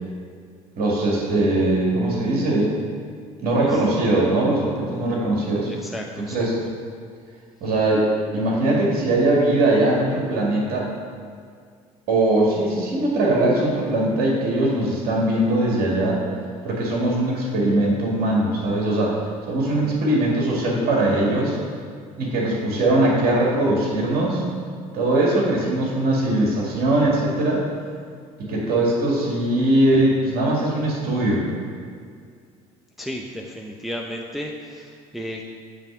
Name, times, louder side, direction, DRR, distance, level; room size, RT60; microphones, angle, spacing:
voice 1, 0.8-2.7 3.4-5.7 6.2-6.5 7.6-8.1 8.3-10.9 12.1-16.2 16.6-21.6 22.2-24.4 24.9-27.6 28.4-31.5, right 1 dB, 55° right, -3 dB, 2.0 m, -21 dB
voice 2, 3.5-3.8 5.7-6.5 33.0-35.4, equal, ahead, 0 dB, 0.6 m, -33 dB
9.0 x 3.4 x 6.1 m, 2.1 s
hypercardioid pair, 70°, 19 cm